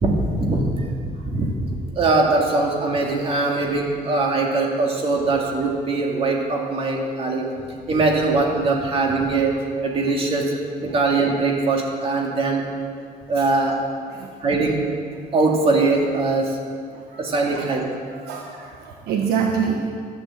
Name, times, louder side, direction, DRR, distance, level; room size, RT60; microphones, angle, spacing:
voice 1, 0.0-7.5 7.9-9.5 9.8-10.5 10.8-12.6 13.3-13.8 14.4-14.8 15.3-16.6 17.2-17.9, right 3 dB, 35° right, 0 dB, 2.2 m, -21 dB
voice 2, 16.9-17.7 18.1-19.9, right 6 dB, 90° right, 1 dB, 1.3 m, -26 dB
12.5 x 9.5 x 7.7 m, 2.1 s
cardioid pair, 170°, 16 cm